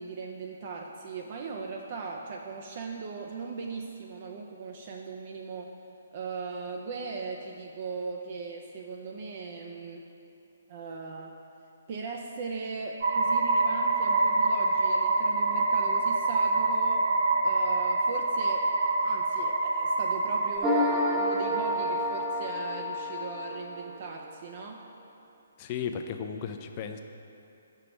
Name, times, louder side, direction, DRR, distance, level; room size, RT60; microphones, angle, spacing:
voice 1, 0.0-5.7 6.1-10.1 10.7-11.4 11.9-17.1 17.4-18.7 19.0-24.8, right 4 dB, 45° right, 1 dB, 0.5 m, -39 dB
sound 1, 13.0-20.6, right 3 dB, 60° right, 1.2 m, -26 dB
sound 2, 20.6-24.0, equal, 15° right, 1.0 m, -29 dB
voice 2, 25.6-27.0, left 7 dB, 35° left, 6 dB, 0.5 m, -35 dB
5.8 x 4.6 x 6.3 m, 2.8 s
figure-of-eight pair, 135°, 0 cm